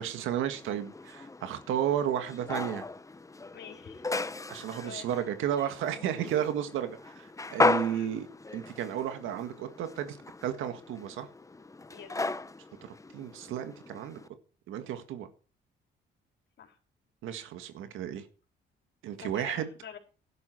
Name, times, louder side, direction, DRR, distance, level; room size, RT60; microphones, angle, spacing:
voice 1, 0.0-2.8 4.5-8.3 8.5-10.2 10.4-11.3 13.1-14.2 14.7-15.3 17.2-18.3 19.0-19.7, right 10 dB, 90° right, 1.9 m, -33 dB
sound 1, 0.5-14.3, left 3 dB, 15° left, 0.8 m, -36 dB
voice 2, 3.5-4.0 4.8-5.1 7.6-8.1 11.9-12.2 16.6-16.8 19.2-20.0, left 8 dB, 65° left, 4.1 m, -47 dB
12.0 x 11.5 x 4.7 m
cardioid pair, 90°, 20 cm